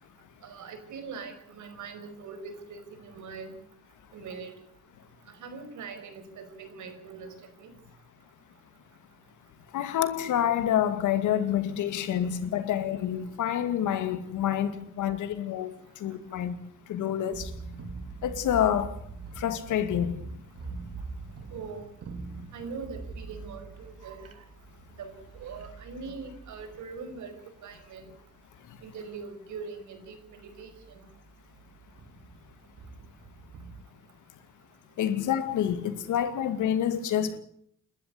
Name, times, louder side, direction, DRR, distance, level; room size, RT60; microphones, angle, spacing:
voice 1, 0.4-3.6 4.1-4.6 5.3-7.7 21.5-21.8 22.5-24.4 25.0-27.3 27.6-28.1 28.8-31.0, right 5 dB, 75° right, 5.3 m, -42 dB
voice 2, 9.7-15.7 16.0-16.5 16.9-17.5 18.2-18.9 19.4-20.1 35.0-37.4, left 10 dB, 80° left, 2.4 m, -27 dB
sound 1, 17.3-28.5 28.8-29.2 29.5-29.6 29.9-33.8, right 4 dB, 55° right, 3.1 m, -44 dB
28.5 x 13.0 x 8.5 m
cardioid pair, 90°, 30 cm